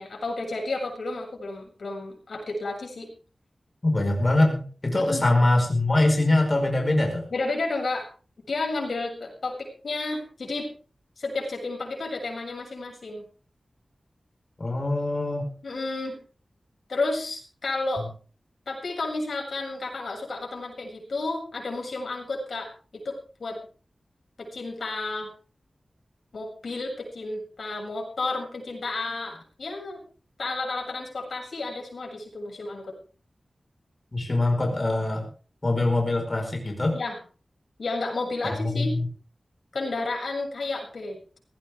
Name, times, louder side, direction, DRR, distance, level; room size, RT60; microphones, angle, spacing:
voice 1, 0.0-3.1 5.0-5.2 7.3-8.1 8.5-10.7 11.2-13.2 15.6-16.2 16.9-18.1 18.7-23.6 24.4-25.3 26.3-30.0 30.4-32.9 36.9-37.2 37.8-39.0 39.7-41.4, left 3 dB, 80° left, 0 dB, 7.2 m, -31 dB
voice 2, 3.8-7.2 14.6-15.5 34.1-35.3 35.6-37.0 38.4-39.1, left 2 dB, 35° left, 2 dB, 5.0 m, -23 dB
19.0 x 16.0 x 3.7 m, 0.39 s
wide cardioid pair, 100°, 0 cm